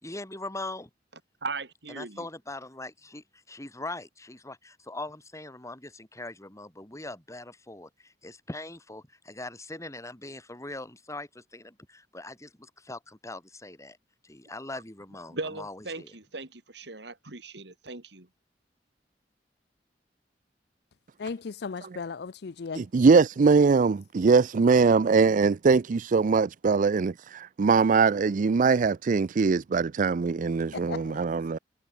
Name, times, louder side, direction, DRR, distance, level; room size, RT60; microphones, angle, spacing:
voice 1, 0.0-0.9 2.0-14.0 14.2-16.1, left 2 dB, 20° left, 4.0 m, -41 dB
voice 2, 1.4-2.3 15.3-18.3, right 3 dB, 75° right, 2.7 m, -38 dB
voice 3, 21.2-22.9 30.7-31.3, left 5 dB, 65° left, 0.5 m, -36 dB
voice 4, 22.8-31.6, right 4 dB, 50° right, 0.4 m, -22 dB
head